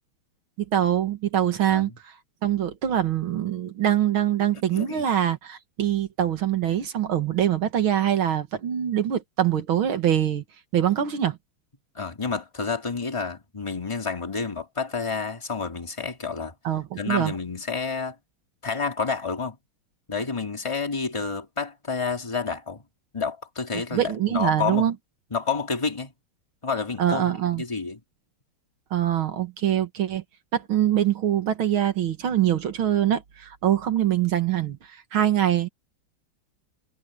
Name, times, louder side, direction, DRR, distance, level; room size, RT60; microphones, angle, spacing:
voice 1, 0.7-1.9 2.4-10.4 10.7-11.4 16.6-17.3 23.9-24.9 27.0-27.6 28.9-30.2 30.5-35.7, right 11 dB, 70° right, 2.3 m, -24 dB
voice 2, 4.7-5.1 11.9-16.5 17.0-18.2 18.6-19.6 20.1-22.8 23.1-24.9 25.3-26.1 26.6-28.0, left 5 dB, 15° left, 2.2 m, -29 dB
omnidirectional pair, 2.3 m